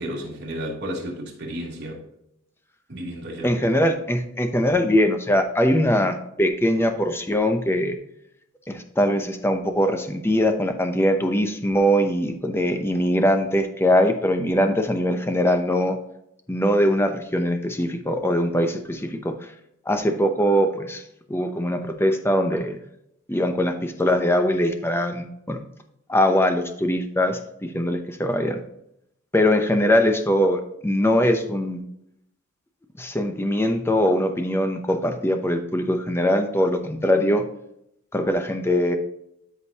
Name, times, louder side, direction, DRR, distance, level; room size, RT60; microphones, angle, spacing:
voice 1, 0.0-2.0 2.9-3.6, equal, 55° right, 3.0 m, -32 dB
voice 2, 3.4-7.9 8.7-16.0 16.5-19.3 19.9-21.0 21.3-22.8 23.3-25.6 26.1-28.6 29.3-31.8 33.0-37.4 38.1-39.0, equal, 10° left, 0.7 m, -22 dB
12.5 x 5.2 x 2.9 m
head